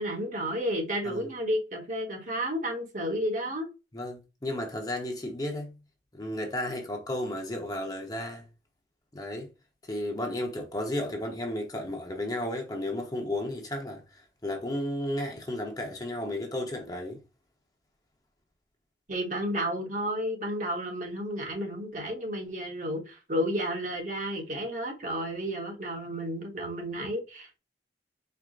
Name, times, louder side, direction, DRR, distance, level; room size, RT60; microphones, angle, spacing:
voice 1, 0.0-3.7 19.1-27.6, equal, 45° right, 1.1 m, -32 dB
voice 2, 3.9-5.8 6.1-8.4 9.1-9.5 9.9-17.2, left 1 dB, 20° left, 0.8 m, -33 dB
4.5 x 2.1 x 3.7 m
head